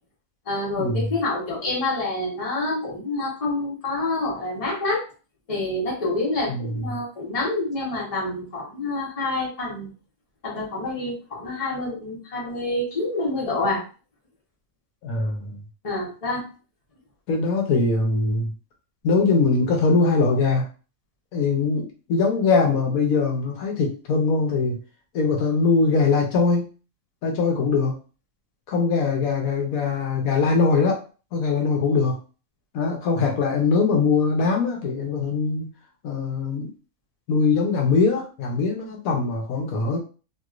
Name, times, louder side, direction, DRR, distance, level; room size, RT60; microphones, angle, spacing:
voice 1, 0.5-5.0 5.5-9.9 10.4-13.8 15.8-16.5, left 2 dB, 30° left, -4 dB, 1.0 m, -27 dB
voice 2, 15.0-15.6 17.3-18.5 19.0-20.6 21.3-24.8 25.1-26.7 27.2-28.0 28.7-31.0 31.3-32.1 32.7-35.7 36.0-36.7 37.3-40.0, left 4 dB, 80° left, 1 dB, 1.2 m, -22 dB
3.0 x 2.8 x 2.4 m, 0.36 s
omnidirectional pair, 1.5 m